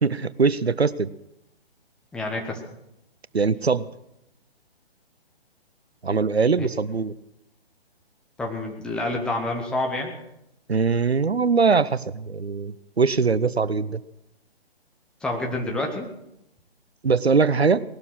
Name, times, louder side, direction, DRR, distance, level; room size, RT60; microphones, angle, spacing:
voice 1, 0.0-1.1 3.3-3.9 6.0-7.1 10.7-14.0 17.0-17.8, right 5 dB, 80° right, 18 dB, 0.8 m, -21 dB
voice 2, 2.1-2.6 6.6-6.7 8.4-10.1 15.2-16.1, left 2 dB, 5° left, 1 dB, 0.8 m, -28 dB
19.0 x 12.0 x 6.2 m, 0.84 s
figure-of-eight pair, 135°, 31 cm